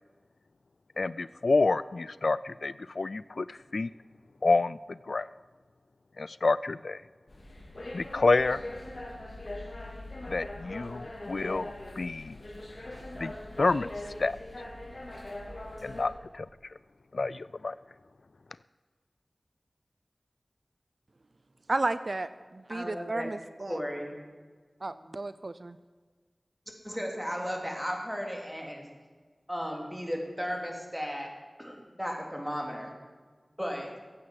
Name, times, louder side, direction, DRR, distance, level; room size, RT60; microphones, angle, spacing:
voice 1, 1.0-3.9 4.4-5.3 6.2-7.0 7.9-8.6 10.3-12.4 13.2-13.3 13.6-13.9 14.2-14.4 15.8-16.5 17.1-17.8, left 3 dB, 75° left, 17 dB, 0.3 m, -28 dB
sound 1, 7.3-16.1, left 1 dB, 50° left, 3.6 m, -41 dB
voice 2, 21.7-23.8 24.8-25.8, right 2 dB, 60° right, 13 dB, 0.5 m, -33 dB
voice 3, 22.7-23.3 23.7-24.1 26.8-28.9 29.5-31.3 31.6-32.9 33.6-33.9, equal, ahead, 1 dB, 3.2 m, -35 dB
15.5 x 8.7 x 7.7 m, 1.5 s
wide cardioid pair, 65°, 0 cm